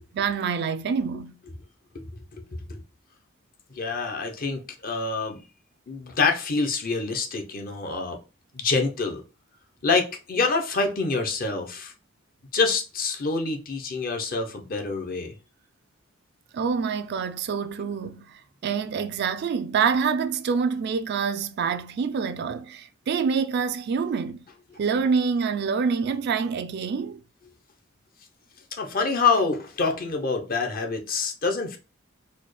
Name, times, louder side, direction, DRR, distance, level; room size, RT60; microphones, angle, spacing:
voice 1, 0.1-1.3 16.5-24.4 24.8-27.2, right 6 dB, 55° right, 0.3 m, -26 dB
voice 2, 1.9-2.4 2.7-2.8 3.7-5.4 5.9-8.2 8.5-9.2 9.8-11.9 12.5-15.3 28.7-31.8, left 4 dB, 45° left, 0.7 m, -26 dB
4.2 x 2.2 x 3.1 m
head